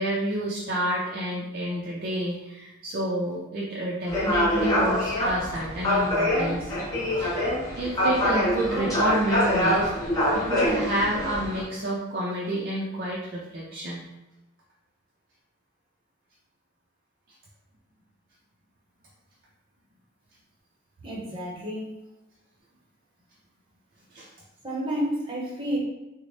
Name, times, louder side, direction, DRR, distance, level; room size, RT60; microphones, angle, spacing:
voice 1, 0.0-6.8 7.1-7.5 7.8-9.9 10.3-14.0 24.1-24.3, right 1 dB, 45° right, -5 dB, 0.5 m, -29 dB
sound 1, 4.1-11.6, left 1 dB, 15° left, 0.9 m, -25 dB
voice 2, 21.0-21.9 24.6-25.8, equal, 25° right, -4 dB, 0.9 m, -30 dB
3.9 x 2.1 x 3.2 m, 1.0 s
head